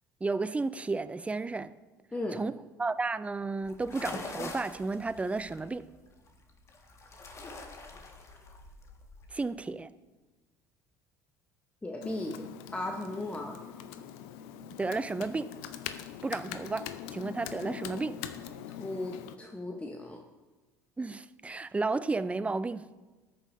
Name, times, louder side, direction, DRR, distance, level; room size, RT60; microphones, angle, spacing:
voice 1, 0.2-1.7 2.3-5.8 9.3-9.9 14.8-15.5 16.2-18.2 21.0-22.8, right 3 dB, 15° right, 15 dB, 0.5 m, -32 dB
sound 1, 3.6-9.4, left 2 dB, 30° left, 1.8 m, -44 dB
voice 2, 11.8-12.4 12.7-13.6 18.7-20.2, left 2 dB, 15° left, 2 dB, 1.1 m, -36 dB
Computer keyboard, 12.0-19.4, left 10 dB, 60° left, 0.7 m, -42 dB
20.0 x 8.9 x 2.7 m, 1.2 s
figure-of-eight pair, 65°, 10 cm